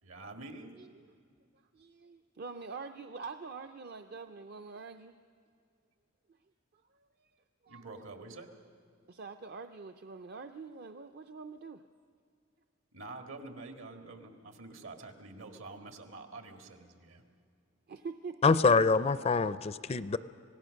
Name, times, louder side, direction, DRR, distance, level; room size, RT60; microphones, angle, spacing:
voice 1, 0.0-0.9 7.7-8.5 12.9-17.2, right 2 dB, 75° right, 2.0 m, -47 dB
voice 2, 1.7-5.1 6.9-7.9 9.1-11.8 17.9-18.9, right 4 dB, 50° right, 0.6 m, -45 dB
voice 3, 18.4-20.2, left 4 dB, 30° left, 0.4 m, -25 dB
25.5 x 17.5 x 6.5 m
head